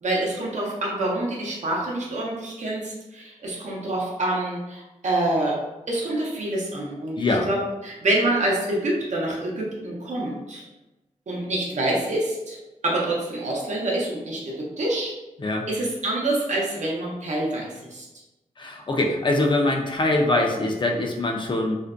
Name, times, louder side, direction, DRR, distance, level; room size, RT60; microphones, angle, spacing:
voice 1, 0.0-5.6 5.9-10.6 11.3-12.6 12.8-15.1 15.7-18.1, right 1 dB, 65° right, -3 dB, 0.7 m, -26 dB
voice 2, 7.2-7.5 15.4-15.7 18.6-21.8, left 2 dB, 40° left, 1 dB, 0.4 m, -23 dB
2.5 x 2.1 x 2.4 m, 1.0 s
wide cardioid pair, 75°, 13 cm